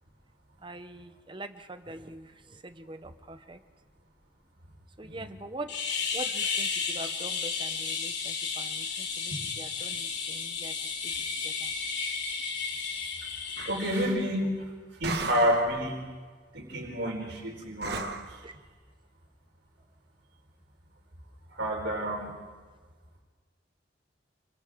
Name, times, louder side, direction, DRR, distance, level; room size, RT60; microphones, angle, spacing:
voice 1, 0.6-3.6 5.0-5.7 6.1-10.7 11.0-11.1 11.4-11.7 18.4-18.5, right 2 dB, 25° right, 9 dB, 0.9 m, -43 dB
voice 2, 5.0-5.4 13.7-14.7 15.0-16.0 16.5-18.5 21.5-22.3, equal, 75° right, 0 dB, 4.4 m, -29 dB
sound 1, 5.7-14.0, left 5 dB, 70° left, 3.2 m, -33 dB
sound 2, 13.6-13.9 15.0-15.8 17.8-18.4, right 3 dB, 60° right, 1.4 m, -35 dB
30.0 x 24.0 x 3.7 m, 1.5 s
head